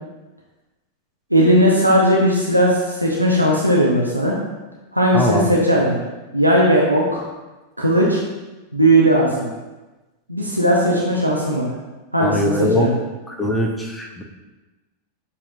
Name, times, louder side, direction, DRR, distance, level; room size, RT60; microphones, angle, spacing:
voice 1, 1.3-4.3 4.9-6.0 6.3-7.2 7.8-8.2 8.7-9.5 10.3-11.7 12.1-13.0, equal, 90° right, -3 dB, 0.6 m, -17 dB
voice 2, 5.1-5.5 12.2-12.9 13.3-14.2, left 1 dB, 5° left, 1 dB, 0.6 m, -21 dB
6.7 x 2.8 x 2.6 m, 1.1 s
figure-of-eight pair, 90°, 0 cm